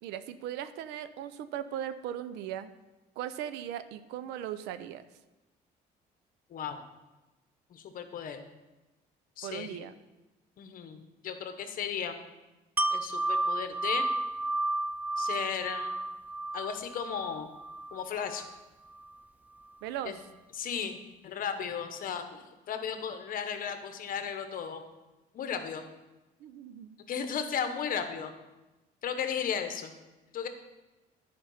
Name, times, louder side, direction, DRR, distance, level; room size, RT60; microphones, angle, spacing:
voice 1, 0.0-2.7 3.2-5.1 9.4-9.9 19.8-20.2 26.4-27.0, right 10 dB, 90° right, 13 dB, 0.5 m, -38 dB
voice 2, 7.7-8.4 9.4-9.8 10.6-12.2 12.9-14.1 15.2-15.9 16.5-17.5 17.9-18.4 20.0-20.2 20.5-21.0 21.2-24.8 25.3-25.9 27.1-28.3 29.0-29.9 30.3-30.5, left 7 dB, 55° left, 8 dB, 1.0 m, -35 dB
Wind chime, 12.8-18.6 19.0-19.1, right 2 dB, 10° right, 0.3 m, -32 dB
10.0 x 5.2 x 5.5 m, 1.1 s
cardioid pair, 110°, 17 cm